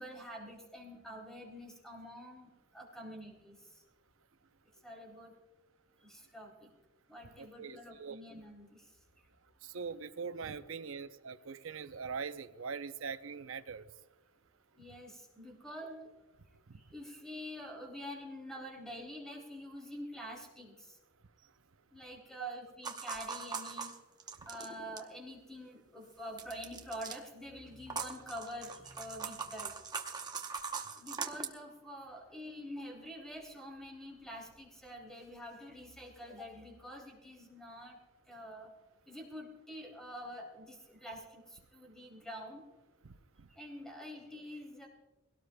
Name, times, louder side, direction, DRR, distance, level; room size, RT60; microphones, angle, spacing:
voice 1, 0.0-3.8 4.8-5.4 6.0-6.7 7.1-8.9 9.2-9.3 14.8-16.1 16.7-21.0 21.9-23.9 24.4-29.7 30.9-38.0 38.3-38.7 39.1-42.6 43.5-44.9, equal, 5° left, -1 dB, 2.8 m, -47 dB
voice 2, 7.4-8.2 9.6-13.9 16.7-16.8 22.4-22.5 43.0-43.5, right 5 dB, 90° right, 11 dB, 0.7 m, -42 dB
sound 1, 22.8-25.1 26.4-27.2 27.9-31.5, right 5 dB, 20° right, 0.9 m, -41 dB
22.0 x 17.5 x 2.3 m, 1.1 s
head